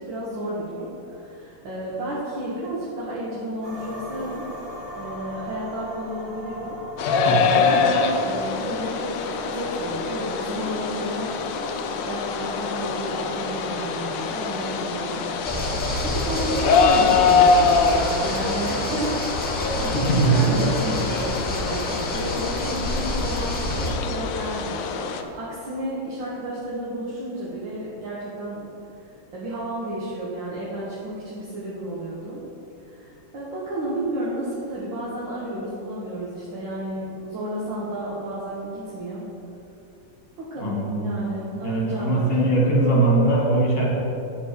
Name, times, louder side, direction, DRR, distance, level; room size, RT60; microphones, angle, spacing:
voice 1, 0.0-4.5 5.0-6.8 7.2-19.1 19.8-28.7 29.3-32.4 32.8-39.3 40.4-42.3, right 1 dB, 65° right, -7 dB, 2.0 m, -32 dB
sound 1, 3.6-18.8, equal, 25° right, 1.5 m, -41 dB
sound 2, 7.0-25.2, left 5 dB, 75° left, 1.2 m, -24 dB
voice 2, 7.1-7.4 19.9-20.7 40.6-41.1 41.6-43.8, right 2 dB, 30° left, -4 dB, 1.9 m, -21 dB
sound 3, 15.4-23.9, equal, 5° left, 1.0 m, -29 dB
9.9 x 5.2 x 5.1 m, 2.9 s
omnidirectional pair, 2.2 m